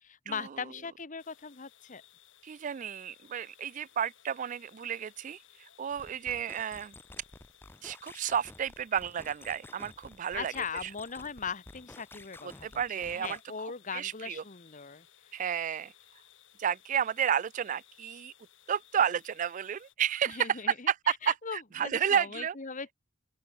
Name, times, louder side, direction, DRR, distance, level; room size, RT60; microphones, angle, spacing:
voice 1, 0.0-2.0 10.3-15.1 20.3-22.9, left 5 dB, 40° left, 1.3 m, -40 dB
sound 1, 1.2-19.9, left 12 dB, 70° left, 2.4 m, -61 dB
voice 2, 2.4-5.4 5.8-6.9 7.8-10.5 10.8-10.9 12.4-13.4 13.9-14.4 15.3-15.9 16.6-18.3 18.7-22.5, right 8 dB, 40° right, 0.3 m, -31 dB
sound 2, 5.9-13.4, left 2 dB, 10° left, 0.7 m, -52 dB
open air
head